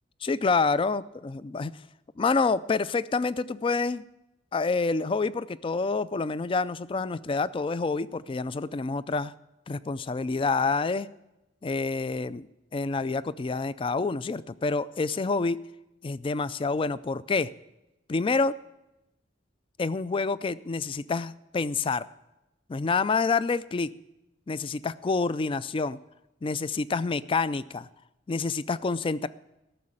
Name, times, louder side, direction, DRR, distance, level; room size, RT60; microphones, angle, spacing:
voice 1, 0.2-1.7 2.2-4.0 4.5-9.3 9.7-11.1 11.6-12.5 12.7-15.6 16.0-17.5 18.1-18.5 19.8-22.1 22.7-23.9 24.5-26.0 26.4-27.9 28.3-29.3, left 4 dB, 30° left, 17 dB, 0.3 m, -27 dB
13.5 x 6.5 x 8.8 m, 0.93 s
head